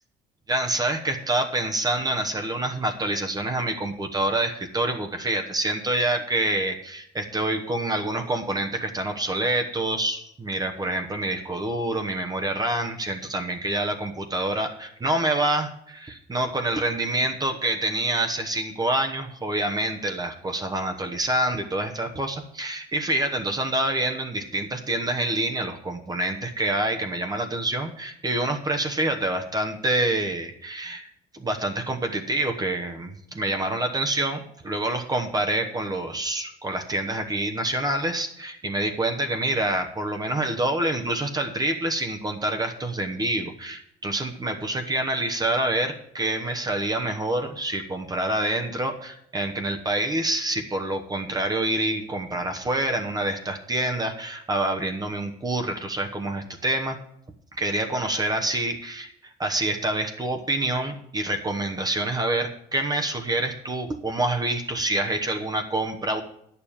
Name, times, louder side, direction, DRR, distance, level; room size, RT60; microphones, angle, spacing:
voice 1, 0.5-57.0 57.6-66.2, right 1 dB, 25° right, 5 dB, 1.1 m, -27 dB
9.6 x 6.9 x 7.1 m, 0.73 s
cardioid pair, 110°, 17 cm